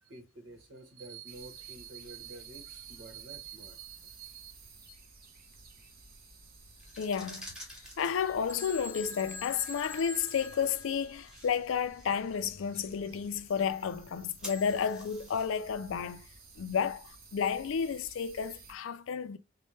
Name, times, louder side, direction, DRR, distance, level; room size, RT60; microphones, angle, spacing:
voice 1, 0.0-4.5, right 6 dB, 75° right, 1.1 m, -47 dB
sound 1, 1.3-18.7, right 3 dB, 50° right, 0.8 m, -55 dB
sound 2, 6.7-17.6, left 1 dB, 5° right, 1.0 m, -52 dB
voice 2, 6.9-7.5 8.0-16.3 16.6-19.4, left 7 dB, 85° left, 0.4 m, -32 dB
Telephone, 8.5-11.5 14.5-14.9, left 2 dB, 15° left, 0.4 m, -45 dB
4.2 x 2.2 x 3.2 m
head